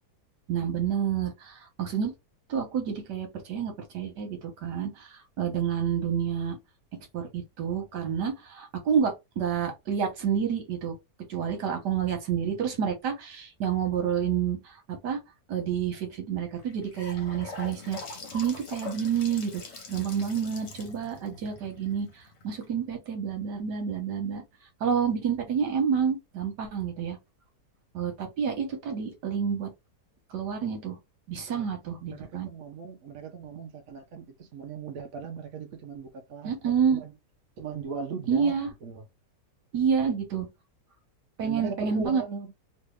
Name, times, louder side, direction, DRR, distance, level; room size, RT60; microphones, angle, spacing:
voice 1, 0.5-2.1 2.5-6.6 7.1-10.9 11.3-15.2 15.5-19.6 19.9-24.4 24.8-27.2 27.9-29.7 30.3-31.0 31.3-32.5 36.4-37.0 38.3-38.7 39.7-40.5 41.4-42.2, right 7 dB, 80° right, 1.7 m, -29 dB
Gurgling / Sink (filling or washing) / Bathtub (filling or washing), 16.6-22.6, left 3 dB, 50° left, 0.9 m, -43 dB
voice 2, 32.0-37.1 37.6-39.0 41.4-42.5, right 5 dB, 60° right, 1.1 m, -38 dB
3.3 x 2.6 x 3.2 m
omnidirectional pair, 1.8 m